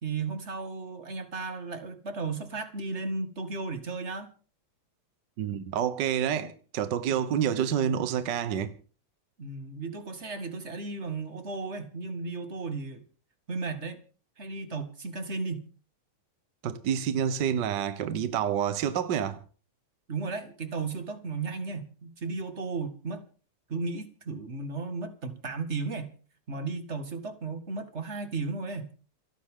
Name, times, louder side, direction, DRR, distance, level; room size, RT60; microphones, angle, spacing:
voice 1, 0.0-4.3 9.4-13.0 13.5-14.0 14.4-15.7 20.1-23.2 23.7-26.1 26.5-28.9, right 4 dB, 30° right, 1.7 m, -35 dB
voice 2, 5.4-8.7 16.6-19.4, right 8 dB, 60° right, 1.1 m, -28 dB
29.0 x 9.8 x 3.8 m
omnidirectional pair, 3.3 m